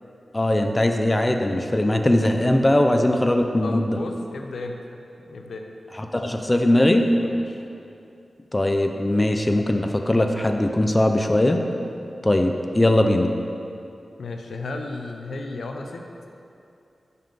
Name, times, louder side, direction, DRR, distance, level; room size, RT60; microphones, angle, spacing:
voice 1, 0.3-3.8 6.1-7.1 8.5-11.6 12.2-13.3, left 1 dB, 25° left, 4 dB, 0.5 m, -20 dB
voice 2, 3.6-4.8 5.2-5.7 7.2-7.6 14.2-16.1, left 3 dB, 85° left, 3 dB, 0.5 m, -34 dB
5.7 x 5.5 x 5.2 m, 2.6 s
wide cardioid pair, 65°, 0 cm